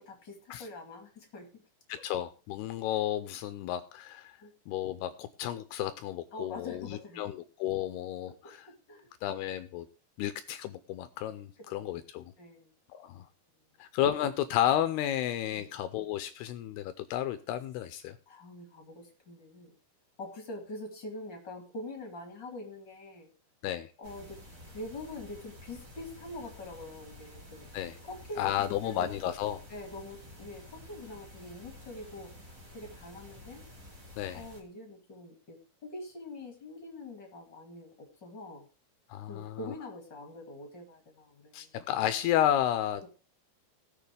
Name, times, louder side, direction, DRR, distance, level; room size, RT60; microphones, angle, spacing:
voice 1, 0.0-1.6 4.4-4.5 6.3-7.2 8.3-8.5 8.9-9.1 11.6-11.9 12.4-12.7 15.5-15.7 18.3-19.7 20.2-23.3 24.0-24.4 24.7-27.7 28.0-29.2 29.7-32.3 32.7-33.6 34.3-38.7 39.3-41.7 43.0-43.1, left 2 dB, 35° left, 2 dB, 2.0 m, -44 dB
voice 2, 1.9-4.3 4.7-8.7 9.2-9.9 10.2-12.3 12.9-13.3 13.8-18.1 23.6-23.9 27.7-27.9 28.4-29.6 34.2-34.4 39.1-39.7 41.5-43.0, left 11 dB, 80° left, 10 dB, 2.3 m, -32 dB
sound 1, 24.0-34.6, left 1 dB, 35° right, 1.3 m, -51 dB
19.0 x 6.9 x 3.3 m, 0.34 s
omnidirectional pair, 5.2 m